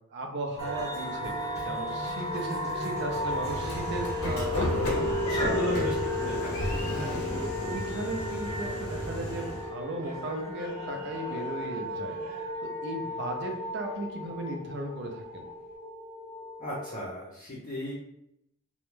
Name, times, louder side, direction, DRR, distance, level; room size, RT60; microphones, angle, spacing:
voice 1, 0.1-1.4 1.6-4.9 5.3-5.9 6.9-12.2 12.6-15.5, right 2 dB, 50° right, 3 dB, 0.4 m, -36 dB
Cheering, 0.5-15.7, left 1 dB, 15° left, 0.9 m, -46 dB
sound 1, 0.6-17.1, left 1 dB, 90° right, 0.6 m, -34 dB
Train / Sliding door, 3.1-9.7, equal, 75° left, 0.6 m, -34 dB
voice 2, 5.2-7.0 16.6-17.9, equal, 35° left, -7 dB, 0.6 m, -35 dB
2.2 x 2.0 x 3.1 m, 0.77 s
head